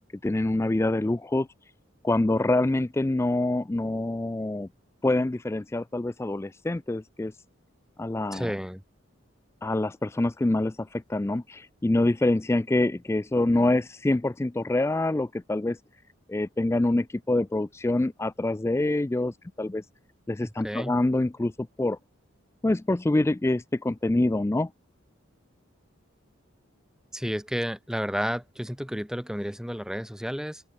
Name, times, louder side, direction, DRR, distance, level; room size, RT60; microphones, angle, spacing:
voice 1, 0.2-1.7 2.0-4.7 5.0-7.4 8.0-8.5 9.6-15.8 16.3-19.9 20.3-22.0 22.6-24.7, left 2 dB, 15° left, 0.3 m, -26 dB
voice 2, 8.3-8.8 20.6-21.0 27.1-30.6, equal, 5° right, 3.2 m, -31 dB
open air
head